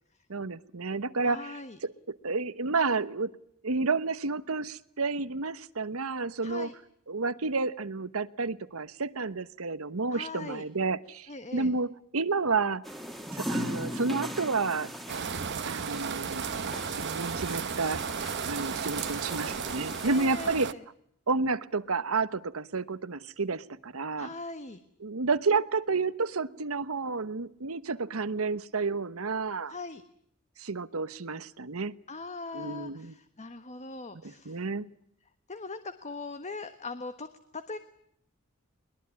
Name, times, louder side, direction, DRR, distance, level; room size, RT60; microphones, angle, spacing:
voice 1, 0.3-3.3 3.6-6.7 7.1-12.8 13.3-14.9 15.6-16.4 17.0-18.1 18.5-20.7 21.3-24.3 25.0-29.7 30.6-31.9 32.5-33.2 34.2-34.9, right 4 dB, 90° right, 14 dB, 1.1 m, -30 dB
voice 2, 1.2-1.8 6.4-6.7 10.1-10.6 11.3-11.7 20.0-20.8 24.1-24.8 29.7-30.0 32.1-34.6 35.5-37.8, left 3 dB, 35° left, 10 dB, 1.3 m, -40 dB
sound 1, 12.8-20.3, equal, ahead, 2.5 m, -39 dB
sound 2, 15.1-20.7, right 6 dB, 55° right, 0.9 m, -34 dB
22.0 x 21.5 x 9.6 m, 0.70 s
head